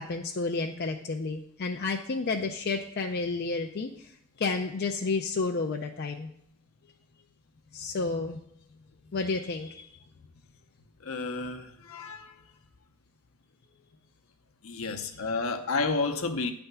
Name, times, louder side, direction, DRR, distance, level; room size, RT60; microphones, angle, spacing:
voice 1, 0.0-4.1 4.4-6.3 7.7-8.4 9.1-10.0 14.9-15.0, left 3 dB, 45° left, 0.4 m, -31 dB
voice 2, 11.0-12.4 14.6-16.5, left 3 dB, 65° left, 0.8 m, -31 dB
9.7 x 3.4 x 6.8 m
head